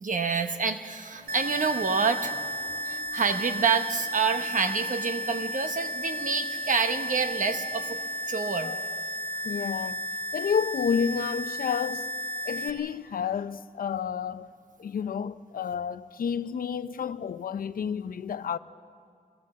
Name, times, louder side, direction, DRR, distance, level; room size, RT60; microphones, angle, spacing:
voice 1, 0.0-2.3 2.8-8.0 8.3-8.7, right 5 dB, 60° right, 1.1 m, -27 dB
sound 1, 1.1-7.9, right 1 dB, 45° right, 6.8 m, -52 dB
sound 2, 1.3-12.7, equal, 85° right, 1.3 m, -33 dB
voice 2, 9.3-12.1 12.4-14.5 14.8-18.6, left 7 dB, 75° left, 0.6 m, -30 dB
22.0 x 17.0 x 7.5 m
wide cardioid pair, 115°, 15 cm